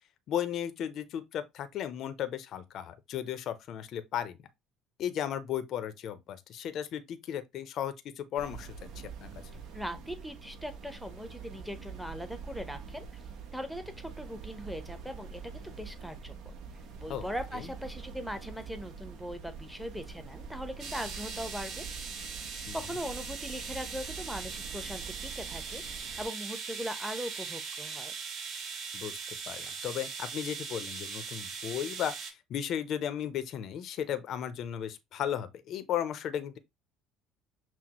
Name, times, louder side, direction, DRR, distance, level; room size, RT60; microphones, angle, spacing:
voice 1, 0.3-4.5 5.0-9.3 17.1-17.2 17.5-17.7 22.7-22.8 28.9-29.2 29.5-36.6, left 10 dB, 55° left, 0.5 m, -35 dB
sound 1, 8.4-26.3, right 5 dB, 70° right, 0.9 m, -45 dB
voice 2, 9.7-13.1 13.5-16.5 17.0-21.9 22.5-28.1, equal, ahead, 0.8 m, -40 dB
sound 2, 20.8-32.3, right 5 dB, 45° right, 2.9 m, -40 dB
5.9 x 2.0 x 2.9 m
supercardioid pair, 95°, 0 cm